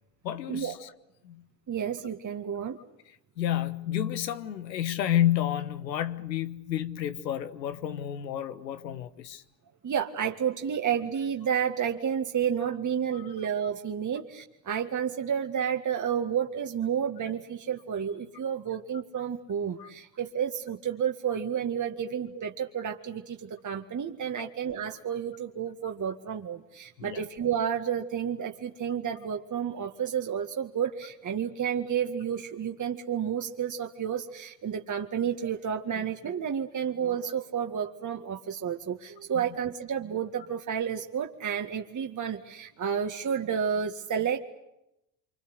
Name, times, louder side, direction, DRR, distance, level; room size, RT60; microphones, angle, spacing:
voice 1, 0.2-0.9 1.2-1.4 3.4-9.4 13.1-13.3 19.8-19.9 22.0-22.1 24.4-24.5 27.0-27.2 39.3-39.4, left 11 dB, 90° left, 1.5 m, -30 dB
voice 2, 1.7-2.8 9.8-44.4, right 8 dB, 35° right, 2.1 m, -31 dB
26.5 x 26.0 x 8.1 m
hypercardioid pair, 65°, 49 cm